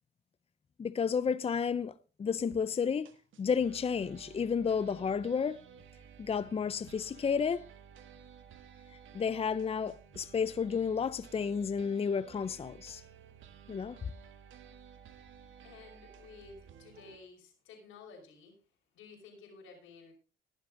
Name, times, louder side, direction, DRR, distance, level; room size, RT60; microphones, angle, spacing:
voice 1, 0.8-3.1 3.4-5.6 6.2-7.6 9.1-13.0 13.7-14.0, left 6 dB, 30° left, 0.6 m, -31 dB
sound 1, 2.5-2.6 3.0-17.2, right 8 dB, 75° right, 1.6 m, -54 dB
voice 2, 15.6-18.6 18.9-20.1, left 4 dB, 90° left, 5.5 m, -53 dB
21.0 x 7.4 x 3.8 m
cardioid pair, 90°, 20 cm